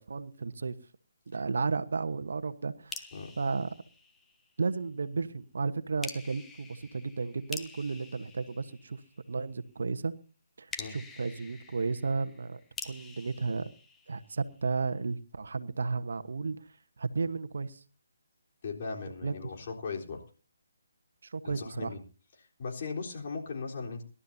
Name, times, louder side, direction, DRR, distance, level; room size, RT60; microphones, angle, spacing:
voice 1, 0.1-0.7 1.3-3.0 3.4-3.7 4.6-9.0 9.3-10.1 10.6-12.6 12.8-13.7 14.1-16.6 17.0-17.8 19.2-19.4 21.2-21.9, right 4 dB, 65° right, 10 dB, 1.2 m, -33 dB
sound 1, 2.9-4.6 6.0-9.3 10.7-14.6, left 4 dB, 10° left, 1.1 m, -46 dB
voice 2, 18.6-20.2 21.4-22.0 22.6-24.0, left 4 dB, 45° left, 0 dB, 3.8 m, -38 dB
25.0 x 12.5 x 2.8 m, 0.36 s
figure-of-eight pair, 150°, 0 cm